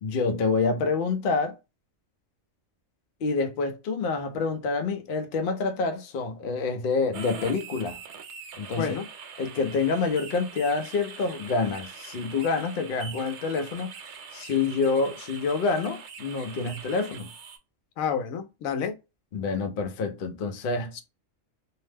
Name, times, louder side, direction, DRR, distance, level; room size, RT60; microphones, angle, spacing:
voice 1, 0.0-1.5 3.2-8.0 8.6-9.0 9.4-13.9 14.3-17.3 19.3-20.9, left 4 dB, 55° left, 0.6 m, -27 dB
sound 1, 7.1-17.6, right 6 dB, 65° right, 0.9 m, -43 dB
voice 2, 18.0-18.9 21.0-21.1, left 7 dB, 85° left, 1.0 m, -29 dB
2.7 x 2.0 x 3.2 m
omnidirectional pair, 1.4 m